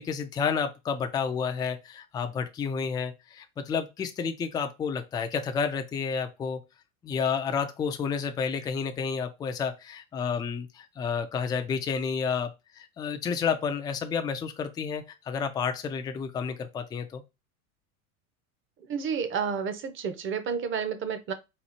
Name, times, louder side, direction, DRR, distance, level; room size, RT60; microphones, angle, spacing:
voice 1, 0.0-6.6 7.0-17.2, left 6 dB, 10° left, 0.3 m, -30 dB
voice 2, 18.9-21.3, right 6 dB, 30° right, 0.7 m, -30 dB
4.2 x 2.3 x 4.3 m
hypercardioid pair, 100°, 43 cm